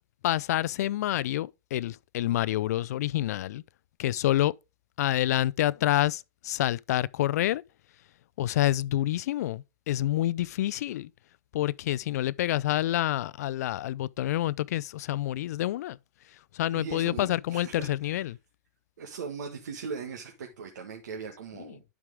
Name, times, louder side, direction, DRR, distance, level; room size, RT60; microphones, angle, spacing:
voice 1, 0.2-3.6 4.0-4.5 5.0-7.6 8.4-11.1 11.5-16.0 16.5-18.4, left 14 dB, 65° left, 0.4 m, -28 dB
voice 2, 16.7-18.2 19.0-21.8, right 5 dB, 85° right, 1.6 m, -39 dB
11.0 x 4.7 x 3.5 m
hypercardioid pair, 150°, 9 cm